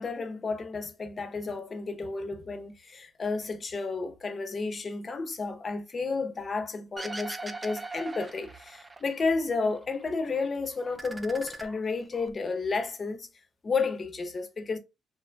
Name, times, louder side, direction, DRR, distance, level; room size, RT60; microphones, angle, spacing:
voice 1, 0.0-13.3 13.6-14.8, left 4 dB, 35° left, 0.7 m, -32 dB
sound 1, 7.0-9.3 9.6-10.5 10.8-12.3, right 3 dB, 20° right, 0.4 m, -41 dB
2.9 x 2.1 x 2.6 m
cardioid pair, 90°, 0 cm